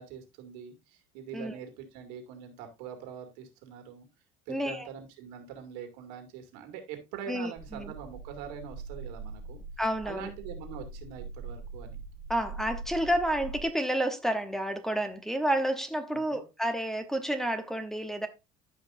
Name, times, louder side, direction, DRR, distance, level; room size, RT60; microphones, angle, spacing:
voice 1, 0.0-4.1 4.5-9.6 10.0-12.0 16.1-16.4, right 8 dB, 85° right, 2.4 m, -43 dB
voice 2, 4.5-4.9 7.3-7.9 9.8-10.3 12.3-18.3, right 1 dB, ahead, 0.9 m, -30 dB
sound 1, 7.6-13.7, right 3 dB, 40° right, 1.5 m, -42 dB
14.0 x 5.3 x 2.6 m
cardioid pair, 130°, 21 cm